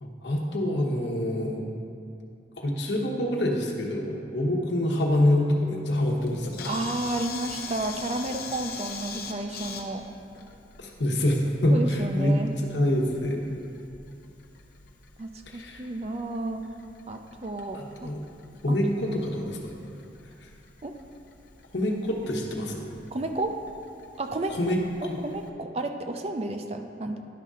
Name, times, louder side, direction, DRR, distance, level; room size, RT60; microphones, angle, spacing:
voice 1, 0.0-1.6 2.6-6.7 10.8-12.4 12.7-13.4 15.5-15.8 17.7-18.2 18.6-19.7 21.7-22.9 24.5-25.2, left 1 dB, 85° left, 0 dB, 1.1 m, -26 dB
Camera, 6.2-25.5, left 5 dB, 55° left, 0.7 m, -44 dB
voice 2, 6.6-10.0 11.7-12.5 15.2-16.6 17.1-18.1 18.7-18.8 20.8-20.9 23.1-23.6 24.2-24.8 25.2-27.2, right 2 dB, 35° right, 5 dB, 0.4 m, -32 dB
11.0 x 3.7 x 5.5 m, 2.5 s
head